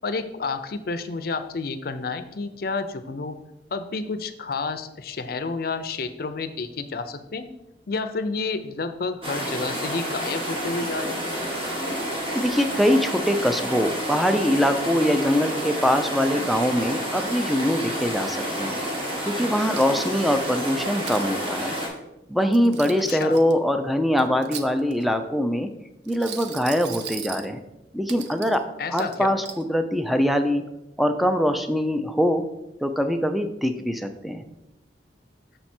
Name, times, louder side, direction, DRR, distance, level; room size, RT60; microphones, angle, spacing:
voice 1, 0.0-3.4 3.7-7.5 7.9-11.2 23.1-23.4 28.8-29.4, left 4 dB, 55° left, 9 dB, 0.5 m, -30 dB
sound 1, 9.2-21.9, equal, 30° right, 1.5 m, -29 dB
sound 2, 10.8-21.1, right 1 dB, 50° right, 1.4 m, -46 dB
voice 2, 12.3-18.8 19.2-21.8 22.3-25.7 26.1-27.6 27.9-28.6 28.9-30.6 31.0-32.4 32.8-34.4, equal, ahead, 7 dB, 0.4 m, -23 dB
Coin (dropping), 19.7-20.3 20.8-21.3 22.4-23.5 24.2-25.1 26.0-27.5 28.1-28.6 29.0-29.6, right 7 dB, 75° right, 0.6 m, -38 dB
6.6 x 4.5 x 4.3 m, 0.91 s
head